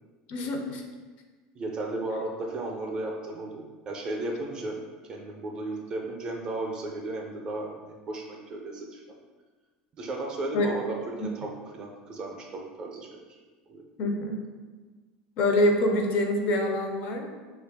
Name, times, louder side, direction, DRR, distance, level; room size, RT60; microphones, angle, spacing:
voice 1, 0.3-0.8 10.5-10.7 11.2-11.3 14.0-14.4 15.4-17.3, left 1 dB, 45° left, 3 dB, 0.4 m, -25 dB
voice 2, 1.6-4.8 5.1-9.0 10.0-13.2 13.7-14.1, right 2 dB, 25° right, 1 dB, 0.4 m, -35 dB
3.2 x 2.3 x 3.3 m, 1.3 s
cardioid pair, 165°, 3 cm